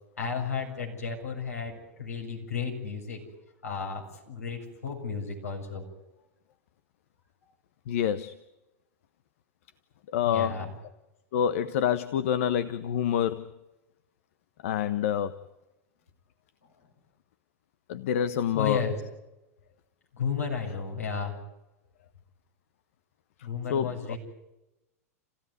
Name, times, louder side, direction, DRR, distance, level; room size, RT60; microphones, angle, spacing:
voice 1, 0.2-3.2 3.6-5.8 10.2-10.7 18.5-19.0 20.2-21.3 23.4-24.2, left 6 dB, 85° left, 0 dB, 7.5 m, -33 dB
voice 2, 7.9-8.4 10.1-10.7 11.3-13.5 14.6-15.4 17.9-18.8 23.7-24.1, left 9 dB, 65° left, 12 dB, 1.0 m, -27 dB
28.0 x 16.0 x 9.7 m, 0.99 s
hypercardioid pair, 95°, 8 cm